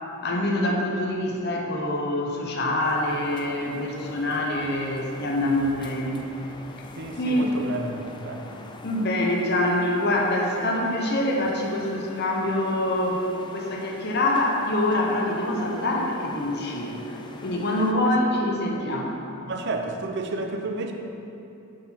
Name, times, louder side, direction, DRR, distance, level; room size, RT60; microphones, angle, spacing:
voice 1, 0.2-6.2 6.8-7.7 8.8-19.2, left 1 dB, 50° left, -1 dB, 1.0 m, -25 dB
sound 1, 2.8-17.9, left 2 dB, 20° left, 0.4 m, -44 dB
voice 2, 7.0-8.5 15.8-15.9 18.7-18.8 19.5-20.9, right 3 dB, 55° right, 4 dB, 0.6 m, -31 dB
7.6 x 4.7 x 5.8 m, 2.8 s
head